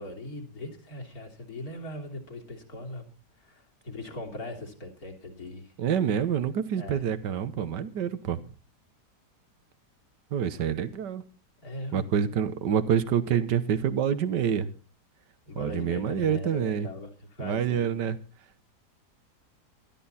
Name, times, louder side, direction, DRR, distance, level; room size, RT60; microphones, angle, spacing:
voice 1, 0.0-3.1 3.4-5.7 6.8-7.0 11.6-12.1 15.5-18.0, left 1 dB, 55° left, 2 dB, 3.8 m, -39 dB
voice 2, 5.8-8.4 10.3-11.2 11.9-14.7 15.6-16.9 17.4-18.2, right 8 dB, 80° right, 13 dB, 1.8 m, -27 dB
19.5 x 13.0 x 4.2 m, 0.35 s
omnidirectional pair, 1.8 m